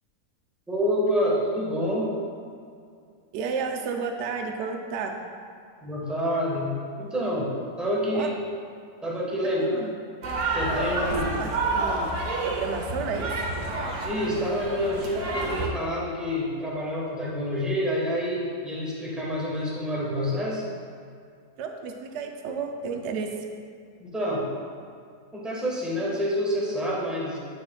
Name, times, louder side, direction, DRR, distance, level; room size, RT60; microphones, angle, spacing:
voice 1, 0.7-2.1 5.8-6.7 7.0-8.3 9.0-9.8 10.5-11.2 14.0-20.6 24.0-24.4 25.3-27.4, equal, ahead, -5 dB, 0.8 m, -27 dB
voice 2, 3.3-5.1 8.1-8.3 9.6-9.9 11.1-12.1 12.4-13.3 21.6-23.3, right 5 dB, 90° right, 4 dB, 0.6 m, -32 dB
sound 1, 10.2-15.7, right 2 dB, 55° right, 1.0 m, -29 dB
8.6 x 5.7 x 2.2 m, 2.3 s
omnidirectional pair, 1.8 m